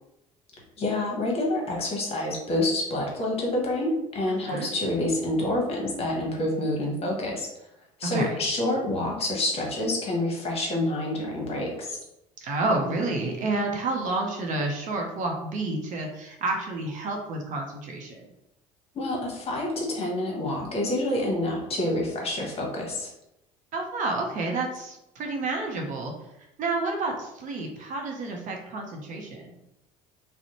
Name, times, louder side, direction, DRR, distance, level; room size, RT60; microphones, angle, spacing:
voice 1, 0.8-7.5 8.0-12.0 18.9-23.1, left 1 dB, 40° left, -1 dB, 0.9 m, -27 dB
voice 2, 4.3-4.7 8.0-8.4 12.4-18.3 23.7-26.1 26.6-29.5, right 2 dB, 50° right, 1 dB, 0.6 m, -30 dB
2.5 x 2.0 x 2.9 m, 0.86 s
hypercardioid pair, 70°, 16 cm